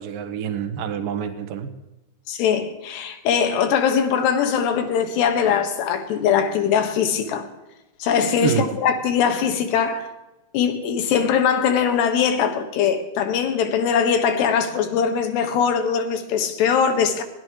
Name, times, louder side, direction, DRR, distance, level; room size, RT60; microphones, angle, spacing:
voice 1, 0.0-1.7 8.4-8.7, right 8 dB, 65° right, 2.6 m, -27 dB
voice 2, 2.3-7.5 8.0-10.1 10.5-17.2, left 7 dB, 75° left, 3.6 m, -21 dB
21.0 x 17.0 x 3.1 m
omnidirectional pair, 5.0 m